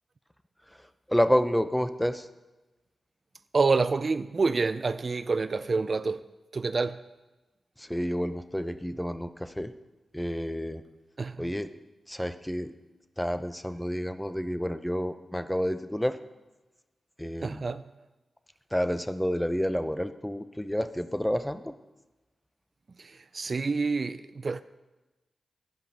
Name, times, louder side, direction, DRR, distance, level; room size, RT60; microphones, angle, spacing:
voice 1, 0.8-2.3 7.8-9.7 10.1-10.8 11.4-11.7 12.1-12.7 13.2-16.2 17.2-17.7 18.7-21.7, equal, 5° left, 0.7 m, -29 dB
voice 2, 3.5-6.2 6.5-7.0 11.2-11.4 17.4-17.8 23.0-24.6, right 4 dB, 55° right, 0.3 m, -27 dB
10.0 x 5.2 x 7.5 m
supercardioid pair, 45°, 0 cm